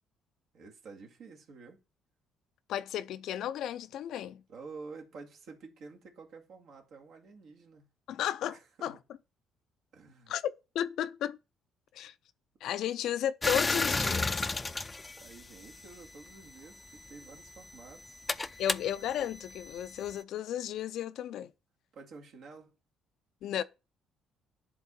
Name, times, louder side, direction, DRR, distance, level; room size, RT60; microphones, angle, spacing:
voice 1, 0.5-1.8 4.5-7.9 8.5-9.0 9.9-10.4 12.6-12.9 15.1-18.2 18.5-18.6 21.9-22.8, right 4 dB, 65° right, 2.2 m, -50 dB
voice 2, 2.7-4.4 8.1-9.0 10.3-11.4 11.9-12.1 12.6-14.5 18.6-21.5 23.4-23.6, left 11 dB, 70° left, 0.5 m, -34 dB
sound 1, 13.4-16.1 17.0-20.2, left 3 dB, 20° left, 0.5 m, -33 dB
10.0 x 3.6 x 4.4 m
cardioid pair, 95°, 0 cm